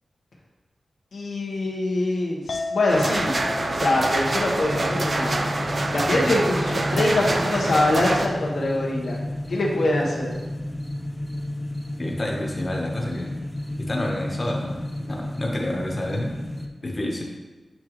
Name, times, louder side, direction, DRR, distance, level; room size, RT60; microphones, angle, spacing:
voice 1, 1.1-3.4 3.7-5.5 5.9-10.4, left 2 dB, 90° left, -3 dB, 1.3 m, -24 dB
Chink clink, 2.5-8.8, left 3 dB, 70° left, 0.7 m, -38 dB
sound 1, 2.9-8.3, right 2 dB, 40° right, 0.5 m, -26 dB
sound 2, 4.6-16.7, left 1 dB, 15° left, 0.6 m, -32 dB
voice 2, 12.0-13.3 13.8-16.4 16.8-17.2, left 1 dB, 30° left, -1 dB, 1.1 m, -29 dB
9.3 x 3.7 x 3.2 m, 1.2 s
wide cardioid pair, 130°, 0 cm